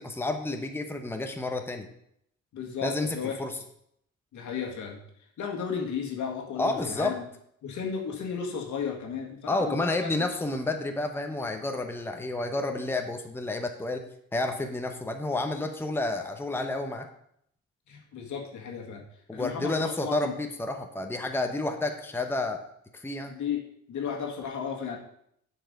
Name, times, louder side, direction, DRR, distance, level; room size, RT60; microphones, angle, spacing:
voice 1, 0.0-1.9 2.8-3.5 6.6-7.2 9.5-17.1 19.3-22.6 23.0-23.4, left 2 dB, 10° left, 5 dB, 0.9 m, -30 dB
voice 2, 2.5-3.4 4.3-5.0 5.4-7.1 7.6-10.3 17.9-19.0 19.3-20.3 23.3-25.0, left 7 dB, 75° left, 1 dB, 1.9 m, -34 dB
7.6 x 4.7 x 6.5 m, 0.71 s
cardioid pair, 90°, 30 cm